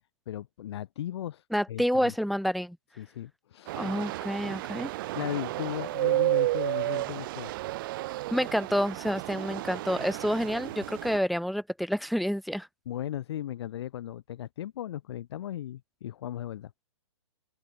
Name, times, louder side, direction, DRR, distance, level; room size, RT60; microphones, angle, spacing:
voice 1, 0.3-2.1 3.0-4.1 5.1-7.5 12.9-16.7, left 12 dB, 50° left, 1.6 m, -37 dB
voice 2, 1.5-2.8 3.7-4.9 8.3-12.7, equal, ahead, 0.3 m, -28 dB
sound 1, 3.7-11.2, right 17 dB, 40° right, 1.1 m, -32 dB
hypercardioid pair, 130°, 17 cm